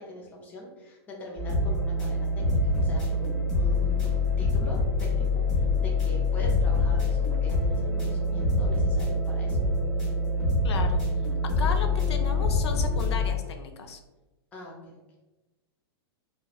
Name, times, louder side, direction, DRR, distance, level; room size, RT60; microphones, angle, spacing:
voice 1, 0.0-9.6 11.6-11.8 14.5-15.0, left 1 dB, 10° left, -2 dB, 0.4 m, -42 dB
sound 1, 1.4-13.3, left 2 dB, 30° left, 1.1 m, -25 dB
voice 2, 10.6-11.0 11.4-14.0, left 5 dB, 90° left, 5 dB, 0.4 m, -35 dB
2.7 x 2.0 x 2.3 m, 1.1 s
hypercardioid pair, 155°, 14 cm